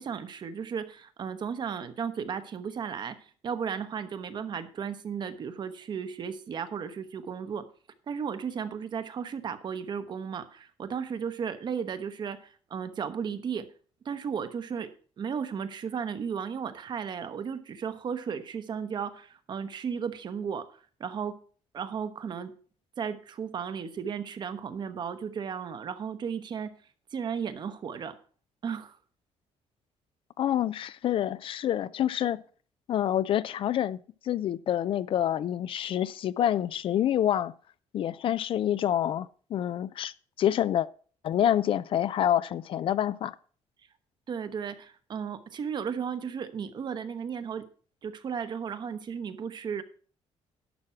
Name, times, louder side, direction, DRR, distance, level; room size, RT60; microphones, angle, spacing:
voice 1, 0.0-7.6 8.1-13.7 14.0-14.9 15.2-21.3 21.7-22.5 23.0-26.7 27.1-28.2 28.6-29.0 44.3-47.6 48.0-49.8, right 7 dB, 40° right, 0.9 m, -35 dB
voice 2, 30.4-32.4 32.9-34.0 34.2-37.5 37.9-40.9 41.2-43.3, left 11 dB, 50° left, 0.4 m, -27 dB
11.5 x 6.1 x 5.8 m
cardioid pair, 155°, 11 cm